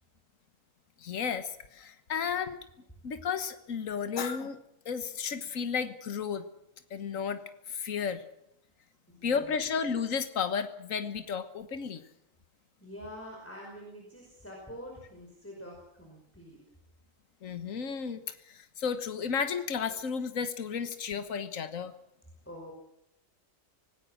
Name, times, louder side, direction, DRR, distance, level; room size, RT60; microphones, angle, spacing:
voice 1, 1.0-2.6 3.0-4.6 4.8-6.4 6.9-7.4 7.7-8.2 9.2-12.0 17.4-21.9, left 6 dB, 75° left, 10 dB, 1.6 m, -33 dB
voice 2, 9.1-9.7 12.8-16.6 22.5-22.7, equal, 10° left, -2 dB, 5.1 m, -46 dB
25.5 x 19.0 x 6.4 m, 0.80 s
omnidirectional pair, 1.4 m